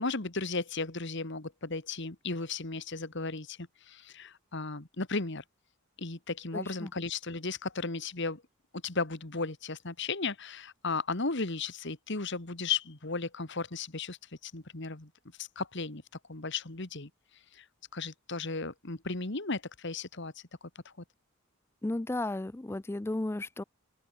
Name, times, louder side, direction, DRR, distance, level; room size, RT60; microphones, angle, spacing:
voice 1, 0.0-5.4 6.0-8.4 8.8-14.2 14.4-15.1 15.4-16.0 16.3-17.1 17.5-17.7 17.9-20.3 20.9-21.0, left 4 dB, 55° left, 1.9 m, -35 dB
voice 2, 6.5-6.9 21.8-23.6, left 2 dB, 10° left, 0.3 m, -34 dB
head